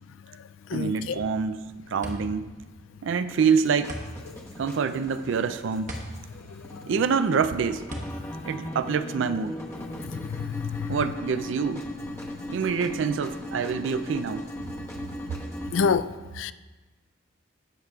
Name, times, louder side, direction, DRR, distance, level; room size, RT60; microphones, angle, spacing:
voice 1, 0.7-2.5 3.0-4.0 4.6-5.9 6.9-7.9 8.4-9.6 10.9-11.9 12.5-14.5, right 6 dB, 65° right, 0.4 m, -26 dB
sound 1, 1.8-9.5, equal, 40° right, 1.0 m, -40 dB
sound 2, 3.3-15.9, left 1 dB, 15° left, 0.9 m, -38 dB
voice 2, 10.3-11.0 15.7-16.1 16.4-16.5, left 6 dB, 70° left, 0.3 m, -26 dB
17.0 x 6.5 x 2.3 m
head